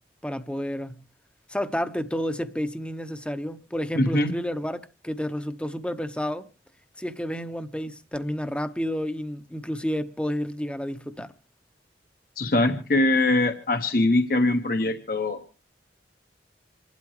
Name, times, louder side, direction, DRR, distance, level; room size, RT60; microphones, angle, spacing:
voice 1, 0.2-1.0 1.5-6.5 7.0-11.3, equal, 5° left, 0.9 m, -30 dB
voice 2, 3.9-4.3 12.4-15.4, left 2 dB, 55° left, 1.2 m, -22 dB
27.0 x 12.0 x 3.2 m
head